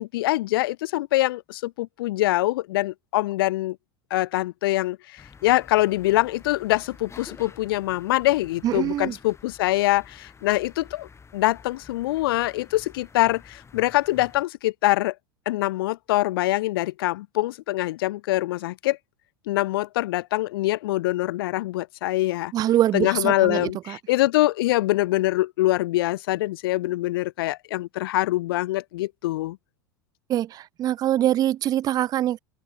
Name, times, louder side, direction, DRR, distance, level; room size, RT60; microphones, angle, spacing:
voice 1, 0.0-3.8 4.1-11.1 11.3-15.1 15.5-19.0 19.5-22.5 22.9-29.6, left 17 dB, 65° left, 0.8 m, -24 dB
sound 1, 5.2-14.4, left 5 dB, 20° left, 5.8 m, -49 dB
voice 2, 8.6-9.1 22.5-24.0 30.3-32.4, right 12 dB, 30° right, 0.4 m, -24 dB
open air
hypercardioid pair, 85°, 13 cm